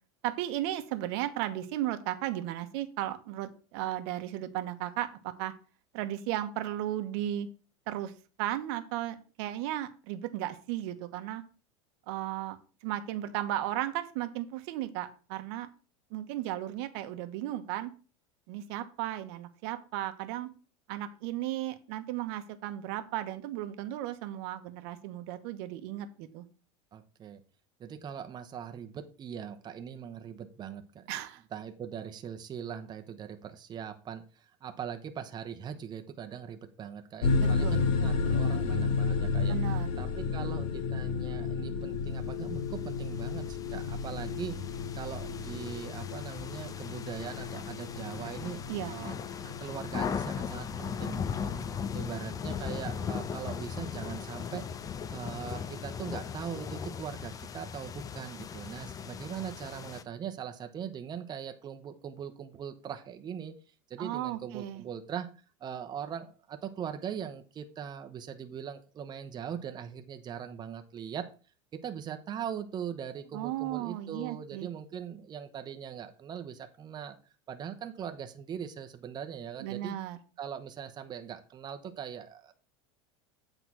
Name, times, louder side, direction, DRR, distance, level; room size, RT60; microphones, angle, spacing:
voice 1, 0.2-5.5 5.9-7.5 7.9-8.1 8.4-11.4 12.1-12.6 12.8-15.7 16.1-17.9 18.5-20.5 20.9-26.4 31.1-31.4 37.4-37.8 39.5-39.9 48.7-49.0 64.0-64.8 73.3-74.7 79.6-80.2, right 13 dB, 65° right, 9 dB, 1.1 m, -35 dB
voice 2, 26.9-27.4 27.8-31.1 31.5-39.5 40.0-44.5 44.9-49.2 49.4-51.6 51.9-54.6 55.1-63.6 63.9-65.3 65.6-71.2 71.7-77.2 77.5-80.0 80.4-82.5, right 8 dB, 30° right, 6 dB, 0.9 m, -41 dB
sound 1, 37.2-55.8, left 4 dB, 70° left, 1.5 m, -33 dB
sound 2, 42.8-60.0, left 7 dB, 25° left, 0.6 m, -39 dB
8.2 x 4.0 x 6.1 m, 0.37 s
supercardioid pair, 120°, 15 cm